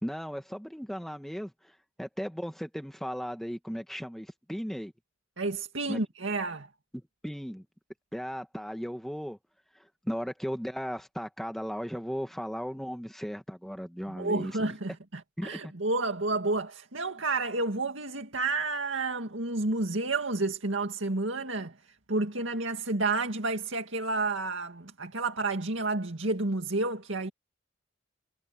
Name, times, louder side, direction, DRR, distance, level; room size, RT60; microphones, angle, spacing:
voice 1, 0.0-4.9 5.9-6.0 7.2-7.6 8.1-9.4 9.7-14.7 15.4-15.7, equal, ahead, 1.6 m, -36 dB
voice 2, 5.4-6.7 14.1-21.7 22.1-27.3, right 3 dB, 90° right, 2.2 m, -30 dB
head